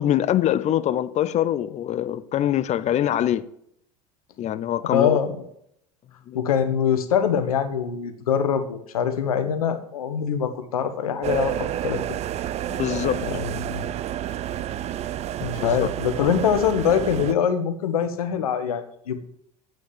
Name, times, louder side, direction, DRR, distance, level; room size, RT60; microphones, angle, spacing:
voice 1, 0.0-3.4 4.4-5.2 6.3-6.4 12.7-13.2 15.6-15.9, left 11 dB, 40° left, 0.7 m, -23 dB
voice 2, 4.8-5.5 6.3-12.0 13.2-13.9 15.4-19.2, left 8 dB, 80° left, 1.2 m, -24 dB
sound 1, 11.2-17.3, right 11 dB, 35° right, 0.5 m, -29 dB
8.8 x 6.3 x 7.4 m
hypercardioid pair, 80°, 18 cm